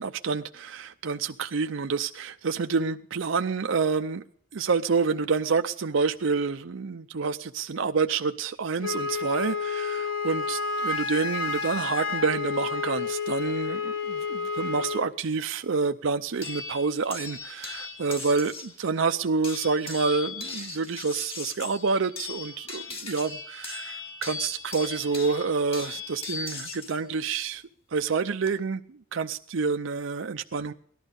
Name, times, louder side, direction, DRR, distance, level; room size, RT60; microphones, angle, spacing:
voice 1, 0.0-4.2 4.5-18.5 18.8-27.6 27.9-30.7, right 4 dB, 70° right, 0.6 m, -28 dB
Wind instrument woodwind instrument, 8.8-15.1, left 5 dB, 85° left, 1.0 m, -30 dB
sound 1, 16.4-18.8 19.4-27.0 28.1-28.5, left 4 dB, 30° left, 2.5 m, -38 dB
18.5 x 12.0 x 5.3 m
head